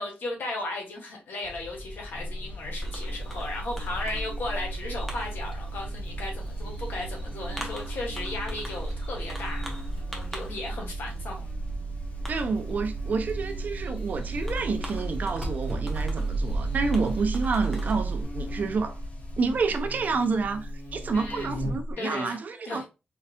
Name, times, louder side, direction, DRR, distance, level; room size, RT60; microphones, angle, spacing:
voice 1, 0.0-9.7 9.9-11.4 21.1-21.5 22.0-22.4 22.6-22.8, left 2 dB, 75° left, 1.5 m, -35 dB
sound 1, 1.4-19.7, left 2 dB, 40° left, 0.6 m, -41 dB
Buzz, 2.1-21.9, equal, 60° left, 2.2 m, -38 dB
Fireworks, 2.8-18.2, right 4 dB, 5° left, 1.0 m, -34 dB
voice 2, 12.3-19.0 19.4-22.8, right 4 dB, 50° right, 0.7 m, -29 dB
4.1 x 3.3 x 2.4 m
wide cardioid pair, 140°, 3 cm